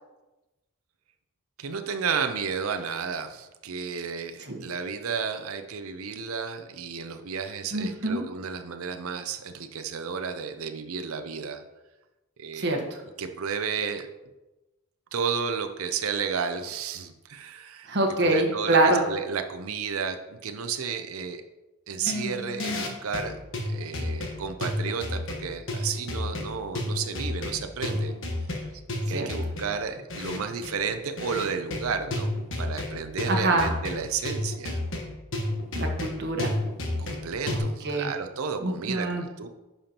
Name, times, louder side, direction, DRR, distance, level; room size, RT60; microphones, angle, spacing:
voice 1, 1.6-11.6 12.4-12.8 13.2-14.1 15.1-17.9 18.2-21.4 21.9-23.4 23.7-28.1 28.5-28.7 29.1-34.8 37.0-39.5, right 6 dB, 70° right, 7 dB, 0.6 m, -32 dB
voice 2, 7.7-8.2 12.5-13.0 17.9-19.0 29.1-29.3 33.3-33.7 35.7-36.5 37.5-38.1 38.6-39.2, right 2 dB, 50° right, 2 dB, 1.2 m, -25 dB
sound 1, 22.0-37.6, left 1 dB, 60° left, 1.2 m, -31 dB
10.5 x 5.5 x 2.9 m, 1.0 s
head